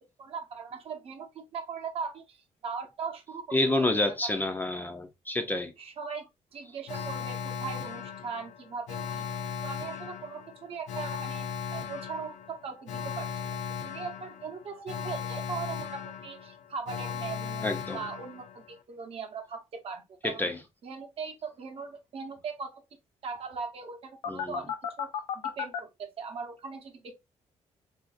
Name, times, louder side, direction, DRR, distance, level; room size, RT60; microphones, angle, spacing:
voice 1, 0.2-3.9 4.2-4.3 5.8-9.3 9.6-17.7 17.9-20.5 20.8-22.8 23.2-25.1 25.4-27.1, right 5 dB, 55° right, 0.7 m, -39 dB
voice 2, 3.5-5.7 17.6-18.0 20.2-20.6 24.3-24.6, left 2 dB, 15° left, 0.4 m, -28 dB
Alarm, 6.9-18.8 24.2-25.8, left 7 dB, 85° left, 0.5 m, -37 dB
3.8 x 2.5 x 2.4 m
cardioid pair, 155°, 12 cm